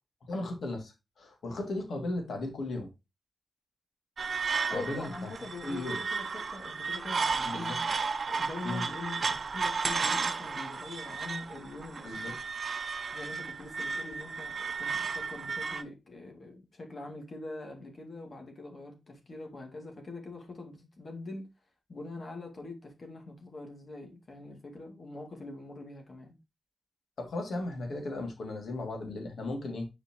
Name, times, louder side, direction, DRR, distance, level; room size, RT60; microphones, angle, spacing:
voice 1, 0.3-2.9 4.7-5.3 5.6-6.0 7.4-7.8 8.6-8.8 12.0-12.3 27.2-29.9, left 2 dB, 75° left, 2.5 m, -36 dB
sound 1, 4.2-15.8, right 5 dB, 60° right, 0.7 m, -33 dB
voice 2, 4.7-7.8 8.3-12.4 13.1-21.5 21.9-26.3, left 2 dB, 50° left, 2.5 m, -43 dB
7.6 x 5.0 x 3.0 m
cardioid pair, 65°, 0 cm